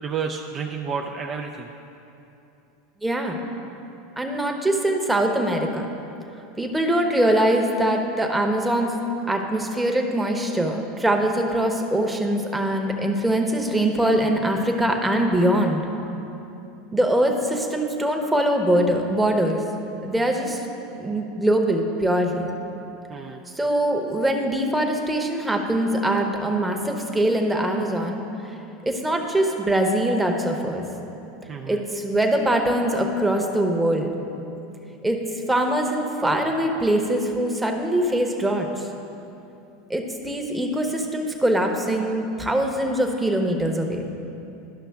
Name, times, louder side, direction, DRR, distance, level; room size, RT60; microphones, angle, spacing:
voice 1, 0.0-1.7 23.1-23.4 31.5-31.8, right 6 dB, 35° right, 1 dB, 0.4 m, -30 dB
voice 2, 3.0-3.4 4.2-5.9 6.6-8.9 9.3-15.9 16.9-19.6 20.0-20.6 21.0-22.5 23.5-28.2 28.8-30.8 31.7-34.1 35.0-35.2 35.5-38.9 39.9-44.0, right 1 dB, 10° right, 2 dB, 0.9 m, -22 dB
11.5 x 5.7 x 3.5 m, 2.8 s
hypercardioid pair, 95°, 0 cm